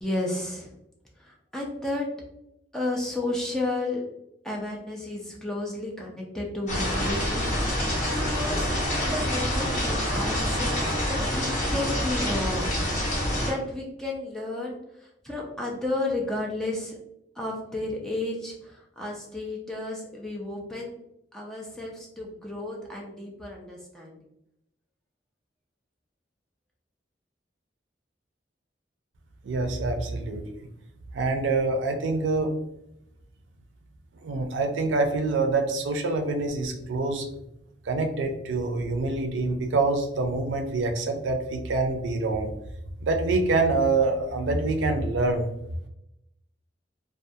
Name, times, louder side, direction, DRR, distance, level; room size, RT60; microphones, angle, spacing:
voice 1, 0.0-0.7 1.2-2.1 2.7-4.0 4.4-8.7 9.0-10.7 11.0-12.7 13.3-17.0 17.4-21.0 21.3-24.2, left 2 dB, 5° left, -2 dB, 0.4 m, -32 dB
sound 1, 6.7-13.5, equal, 45° left, 1.2 m, -26 dB
voice 2, 29.4-30.7 31.1-32.6 34.2-37.3 37.9-42.5 43.0-45.5, right 3 dB, 85° right, 5 dB, 0.4 m, -26 dB
2.3 x 2.2 x 2.6 m, 0.82 s
head